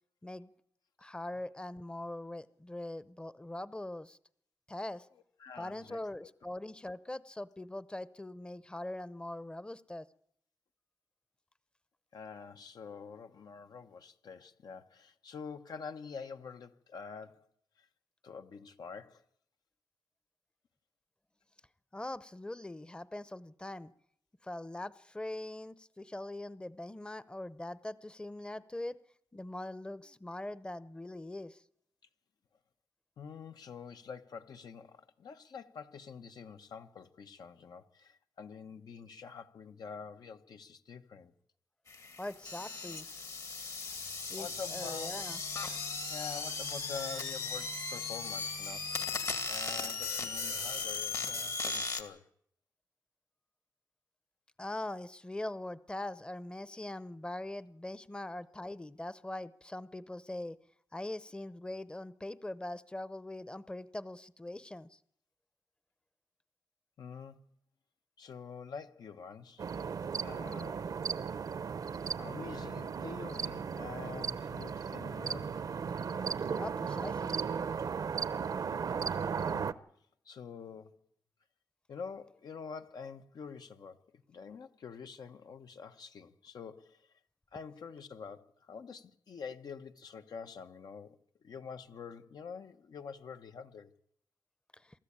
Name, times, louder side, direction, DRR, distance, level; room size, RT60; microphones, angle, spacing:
voice 1, 1.0-4.2 4.7-5.1 5.6-10.1 21.9-23.9 24.4-29.0 29.3-31.6 42.2-43.1 44.3-45.4 54.6-60.6 60.9-65.0 76.6-77.4, left 1 dB, 15° left, 0.8 m, -42 dB
voice 2, 5.4-6.0 12.1-17.5 17.8-17.9 18.2-19.2 33.2-41.3 43.9-44.1 44.4-45.2 46.1-52.3 67.0-67.4 68.2-69.6 70.2-70.8 72.2-75.7 79.5-79.7 80.2-81.0 81.9-87.1 87.5-91.2 91.4-93.9, left 6 dB, 75° left, 1.2 m, -46 dB
sound 1, 41.9-52.0, left 4 dB, 60° left, 2.4 m, -37 dB
sound 2, 69.6-79.7, right 6 dB, 65° right, 0.8 m, -36 dB
24.0 x 13.5 x 8.8 m
cardioid pair, 80°, 7 cm